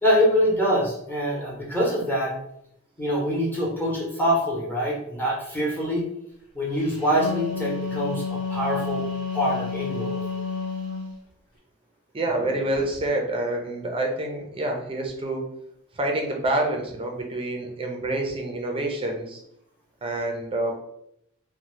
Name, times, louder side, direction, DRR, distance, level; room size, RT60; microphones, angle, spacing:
voice 1, 0.0-2.3 3.0-6.0 6.5-9.0 9.3-10.2, equal, 10° left, -5 dB, 0.8 m, -24 dB
Wind instrument woodwind instrument, 6.9-11.1, left 5 dB, 70° left, 1.3 m, -30 dB
voice 2, 12.1-15.5 16.0-19.4 20.0-20.8, right 1 dB, 25° right, 1 dB, 0.5 m, -27 dB
2.7 x 2.2 x 3.1 m, 0.74 s
head